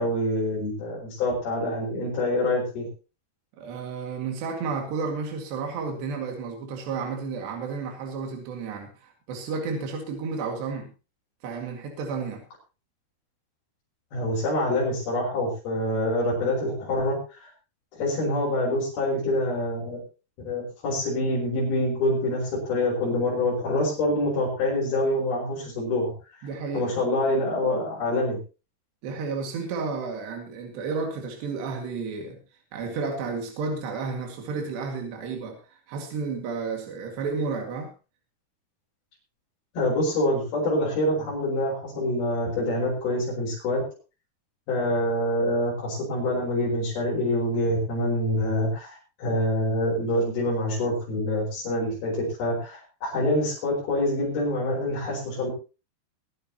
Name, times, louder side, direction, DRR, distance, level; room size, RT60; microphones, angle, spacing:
voice 1, 0.0-2.9 14.1-17.5 17.9-20.0 20.5-26.1 26.4-28.4 39.7-43.8 44.7-55.5, left 1 dB, 65° left, -6 dB, 7.2 m, -26 dB
voice 2, 3.6-10.9 11.4-12.4 26.4-26.9 29.0-32.4 32.7-37.9, right 4 dB, 80° right, 3 dB, 4.3 m, -32 dB
22.5 x 11.0 x 2.9 m, 0.32 s
omnidirectional pair, 4.8 m